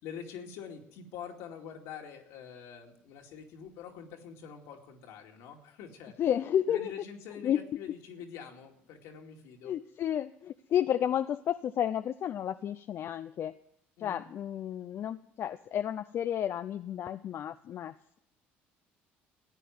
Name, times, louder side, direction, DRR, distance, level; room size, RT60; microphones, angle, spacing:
voice 1, 0.0-6.1 6.7-9.7 14.0-14.3, left 7 dB, 75° left, 2 dB, 2.4 m, -45 dB
voice 2, 6.2-6.9 7.4-7.6 9.6-13.5 14.0-18.2, left 10 dB, 55° left, 10 dB, 0.6 m, -31 dB
15.0 x 9.0 x 9.5 m, 0.75 s
supercardioid pair, 75°, 5 cm